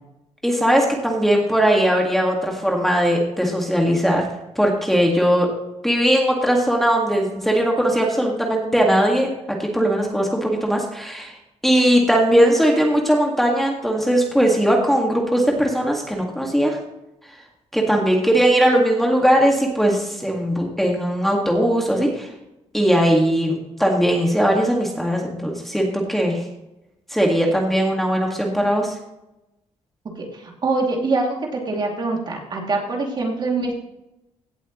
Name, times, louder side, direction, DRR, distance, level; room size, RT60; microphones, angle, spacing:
voice 1, 0.4-4.3 4.6-5.5 5.8-9.3 9.6-11.3 11.6-16.8 17.7-22.3 22.7-26.5 27.1-29.0, equal, ahead, 0 dB, 1.9 m, -19 dB
voice 2, 30.2-33.7, right 3 dB, 40° right, 0 dB, 2.6 m, -24 dB
17.0 x 8.0 x 3.1 m, 0.90 s
cardioid pair, 135°, 12 cm